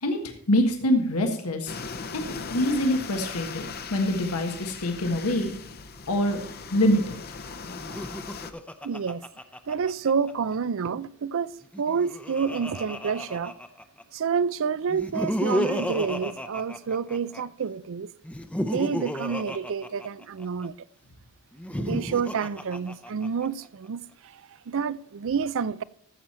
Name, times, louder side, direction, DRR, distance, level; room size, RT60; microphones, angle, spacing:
voice 1, 0.0-1.7 2.1-2.3 2.5-5.5 6.1-6.4 6.7-7.2, left 1 dB, 85° left, 1.5 m, -25 dB
sound 1, 1.7-8.5, left 5 dB, 45° left, 0.8 m, -38 dB
Laughter, 7.8-10.3 11.6-14.0 14.9-17.4 18.2-20.7 21.5-23.5, left 1 dB, 5° left, 0.6 m, -32 dB
voice 2, 8.8-9.2 9.7-11.5 11.8-13.5 14.1-18.1 18.6-20.7 21.7-24.4 24.7-25.8, right 6 dB, 60° right, 0.5 m, -28 dB
14.0 x 7.5 x 4.4 m
head